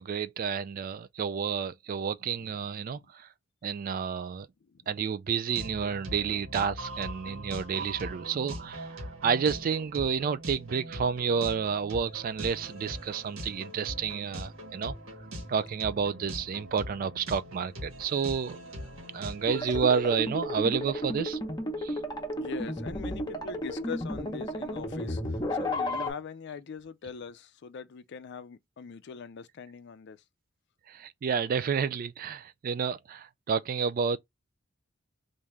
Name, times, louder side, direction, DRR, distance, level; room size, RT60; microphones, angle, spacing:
voice 1, 0.0-3.3 3.6-4.5 4.9-14.9 15.5-18.6 19.1-21.4 21.8-22.0 30.9-34.2, right 6 dB, 45° right, 0.3 m, -30 dB
sound 1, 5.5-19.8, equal, 80° right, 1.4 m, -41 dB
sound 2, 19.5-26.1, equal, 20° left, 0.8 m, -33 dB
voice 2, 22.4-30.2, left 6 dB, 55° left, 0.4 m, -42 dB
3.5 x 2.6 x 3.1 m
head